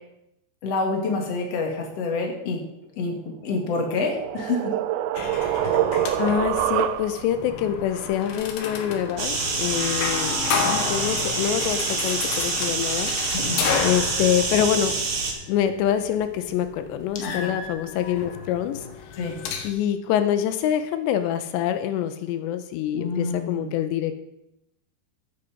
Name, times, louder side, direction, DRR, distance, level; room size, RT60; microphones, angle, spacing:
voice 1, 0.6-2.6 3.0-3.2 3.4-4.7 13.5-13.6 17.2-17.5 19.2-19.3 22.9-23.7, left 3 dB, 45° left, 2 dB, 2.5 m, -27 dB
sound 1, 3.6-7.4, right 13 dB, 90° right, 2.2 m, -26 dB
sound 2, 5.1-19.7, left 6 dB, 65° left, 2.8 m, -32 dB
voice 2, 6.2-10.4 10.6-13.1 13.8-15.0 15.5-18.8 19.6-24.3, left 10 dB, 85° left, 10 dB, 2.9 m, -25 dB
sound 3, 9.2-15.3, right 4 dB, 45° right, 3.0 m, -27 dB
14.5 x 8.7 x 5.1 m, 0.83 s
omnidirectional pair, 5.1 m